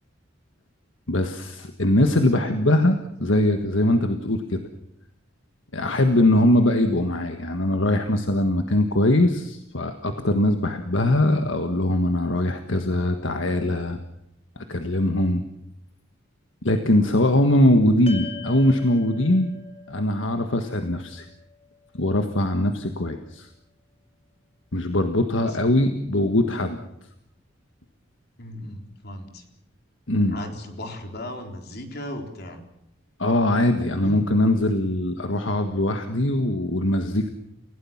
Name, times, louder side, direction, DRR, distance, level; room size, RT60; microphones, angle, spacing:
voice 1, 1.1-4.6 5.7-14.0 14.6-15.4 16.6-19.5 19.9-21.3 21.9-23.5 24.7-26.8 30.1-30.4 33.2-37.3, left 1 dB, 70° left, 6 dB, 1.6 m, -21 dB
sound 1, 18.1-22.5, left 5 dB, 30° left, 2.8 m, -43 dB
voice 2, 25.5-25.9 28.4-29.4 30.3-32.6 34.0-34.2, left 1 dB, 55° left, 4 dB, 4.0 m, -37 dB
29.5 x 16.5 x 7.3 m, 0.82 s
head